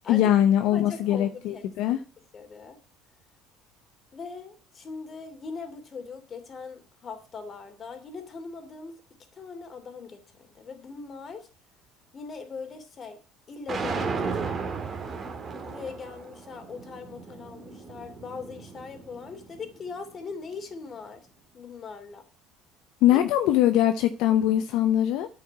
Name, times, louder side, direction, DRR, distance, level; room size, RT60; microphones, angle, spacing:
voice 1, 0.1-2.0 23.0-25.3, left 12 dB, 75° left, 9 dB, 0.8 m, -22 dB
voice 2, 0.7-2.0 2.3-2.8 4.1-9.0 9.3-11.5 12.1-13.2 13.5-14.3 14.6-14.8 15.6-21.2 21.5-22.2 23.1-23.2, left 5 dB, 35° left, 6 dB, 2.8 m, -40 dB
sound 1, 13.7-19.8, right 4 dB, 35° right, 1.9 m, -35 dB
9.3 x 5.8 x 8.1 m, 0.37 s
supercardioid pair, 100°, 0 cm